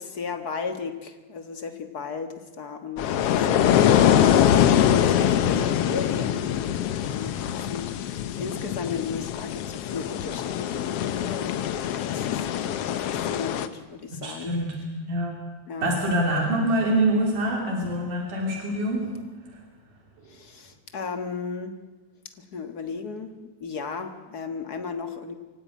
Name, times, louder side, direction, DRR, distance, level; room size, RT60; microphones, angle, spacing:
voice 1, 0.0-11.5 12.0-14.6 15.7-16.0 20.3-21.8 22.4-25.3, left 5 dB, 45° left, 7 dB, 1.4 m, -35 dB
sound 1, 3.0-13.7, left 10 dB, 65° left, 1.6 m, -23 dB
voice 2, 14.2-14.8 15.1-15.4 15.8-19.2 19.5-19.6, right 1 dB, 85° right, 1 dB, 4.5 m, -25 dB
24.0 x 16.5 x 9.4 m, 1.3 s
omnidirectional pair, 3.5 m